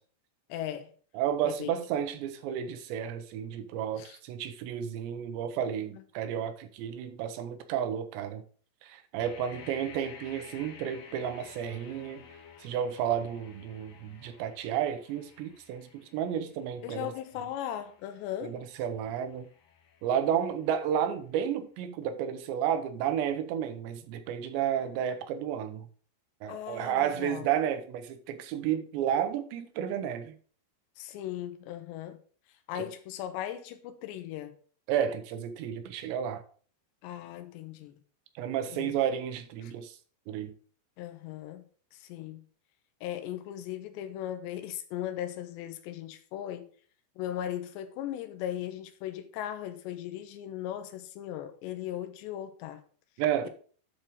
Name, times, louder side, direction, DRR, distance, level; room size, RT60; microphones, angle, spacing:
voice 1, 0.5-0.9 1.4-1.8 4.0-4.2 5.9-6.0 16.8-18.6 26.5-27.5 31.0-32.2 32.7-34.5 37.0-38.0 38.7-38.9 39.6-39.7 41.0-41.6 41.9-42.4 43.0-46.7 47.2-52.8, left 11 dB, 85° left, 3.1 m, -38 dB
voice 2, 1.1-8.4 8.8-12.2 12.6-17.1 18.4-19.5 20.0-25.9 26.4-30.4 32.8-32.9 34.9-36.4 38.4-40.0 40.3-40.5 53.2-53.5, right 9 dB, 85° right, 3.1 m, -32 dB
sound 1, 9.2-21.0, left 6 dB, 65° left, 2.6 m, -53 dB
10.5 x 4.5 x 5.0 m
omnidirectional pair, 5.0 m